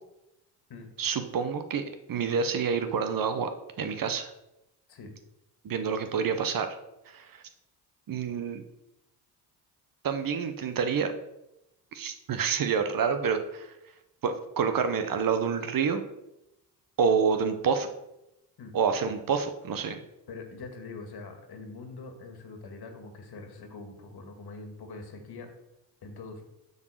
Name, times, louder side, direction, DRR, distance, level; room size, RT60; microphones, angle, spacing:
voice 1, 1.0-1.8 2.1-3.5 3.8-4.3 5.6-6.7 7.1-7.4 8.1-8.6 10.0-11.1 11.9-13.7 14.2-16.0 17.0-17.9 18.7-20.0, right 6 dB, 45° right, 8 dB, 1.0 m, -28 dB
voice 2, 20.3-25.5 26.0-26.4, left 3 dB, 55° left, 5 dB, 1.9 m, -43 dB
7.2 x 4.0 x 6.3 m, 0.89 s
supercardioid pair, 70°, 46 cm